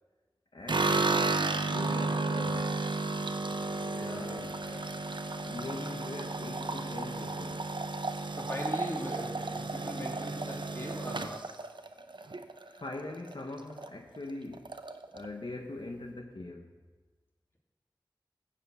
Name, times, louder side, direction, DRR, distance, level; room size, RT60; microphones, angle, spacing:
voice 1, 0.5-2.8 4.1-4.7 5.4-7.7 12.1-12.2 12.6-14.8 15.1-16.8, left 2 dB, 75° left, 2 dB, 0.9 m, -42 dB
sound 1, 0.7-12.9 13.3-13.9 14.1-14.2 14.5-15.3, right 3 dB, 70° right, 0.7 m, -33 dB
voice 2, 3.8-4.9 8.3-11.5, equal, 30° left, -2 dB, 2.6 m, -41 dB
15.0 x 5.0 x 8.0 m, 1.3 s
wide cardioid pair, 45°, 8 cm